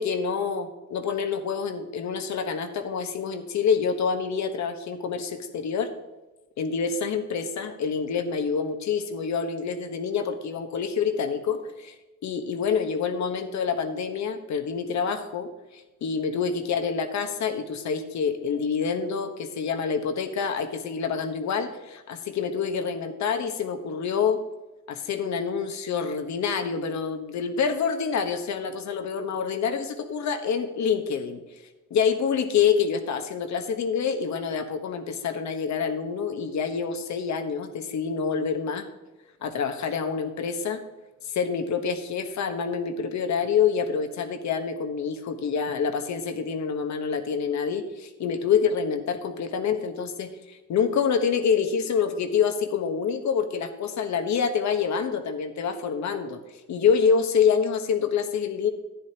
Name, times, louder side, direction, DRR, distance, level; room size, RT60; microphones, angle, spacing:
voice 1, 0.0-5.9 6.6-11.9 12.2-24.4 24.9-31.4 31.9-38.9 39.4-40.8 41.3-56.4 56.7-58.7, left 6 dB, 65° left, 8 dB, 1.2 m, -27 dB
11.5 x 9.9 x 2.9 m, 1.1 s
cardioid pair, 90°, 30 cm